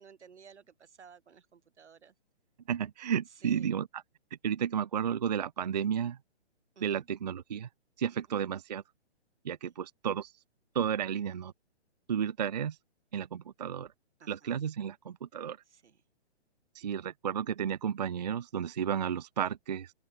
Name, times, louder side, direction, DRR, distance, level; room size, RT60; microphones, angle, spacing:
voice 1, 0.0-2.1 3.4-3.7 6.7-7.1 9.6-9.7 14.2-14.5 15.7-16.0, right 6 dB, 80° right, 3.3 m, -56 dB
voice 2, 2.7-4.0 4.4-6.2 6.8-7.7 8.0-8.8 9.4-10.3 10.7-11.5 12.1-12.8 13.1-13.9 14.3-15.6 16.8-19.9, right 8 dB, 40° right, 0.4 m, -32 dB
open air
hypercardioid pair, 165°, 34 cm